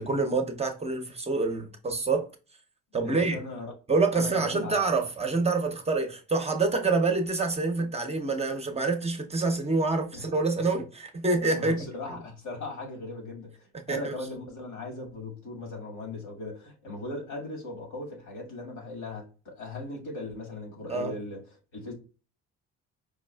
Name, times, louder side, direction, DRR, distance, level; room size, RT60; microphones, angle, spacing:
voice 1, 0.0-2.3 2.9-3.4 3.9-11.9 13.9-14.1 20.9-21.2, right 3 dB, 20° right, 0.7 m, -27 dB
voice 2, 3.0-3.7 4.1-4.8 10.1-10.2 11.5-21.9, left 2 dB, 85° left, 1.9 m, -38 dB
4.8 x 2.3 x 2.2 m
supercardioid pair, 80°, 30 cm